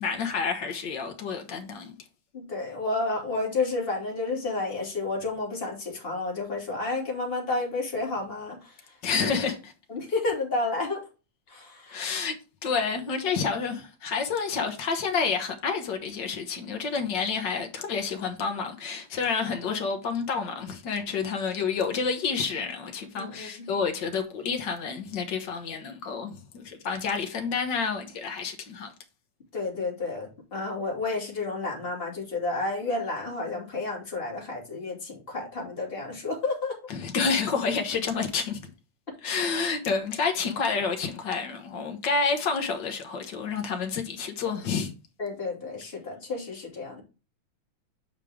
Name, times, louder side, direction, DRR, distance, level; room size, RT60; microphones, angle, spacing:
voice 1, 0.0-2.0 9.0-9.7 11.9-12.3 12.6-28.9 36.9-38.6 39.2-44.9, left 5 dB, 70° left, 1.0 m, -29 dB
voice 2, 2.3-8.7 9.9-11.0 11.5-12.0 23.2-23.7 29.5-36.8 45.2-47.0, left 3 dB, 20° left, 2.5 m, -31 dB
8.2 x 5.3 x 3.5 m
omnidirectional pair, 3.5 m